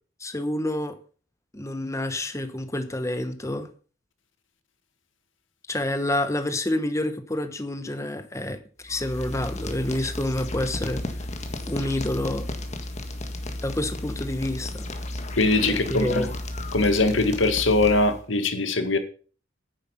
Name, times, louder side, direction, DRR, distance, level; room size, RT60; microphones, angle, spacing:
voice 1, 0.2-1.0 1.5-3.7 5.7-11.0 11.7-12.5 13.6-14.9 15.7-16.3, left 1 dB, 15° left, 1.1 m, -28 dB
sound 1, 8.8-18.2, left 1 dB, 35° left, 1.6 m, -34 dB
voice 2, 15.4-16.3 16.7-19.0, left 2 dB, 85° left, 1.9 m, -21 dB
10.5 x 9.7 x 5.8 m
head